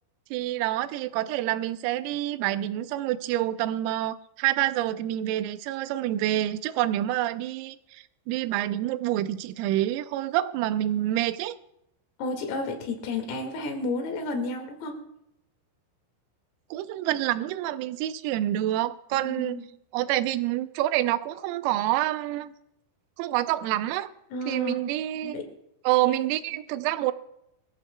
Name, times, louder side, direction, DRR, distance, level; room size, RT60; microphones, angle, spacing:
voice 1, 0.3-11.6 16.7-19.6 19.9-22.5 23.2-24.1 24.5-25.4 25.8-27.1, right 14 dB, 85° right, 3.3 m, -27 dB
voice 2, 12.2-15.0 19.1-19.6 24.3-24.9 25.2-25.4 26.1-26.2, left 2 dB, 85° left, 4.7 m, -32 dB
23.5 x 15.0 x 2.2 m
omnidirectional pair, 5.9 m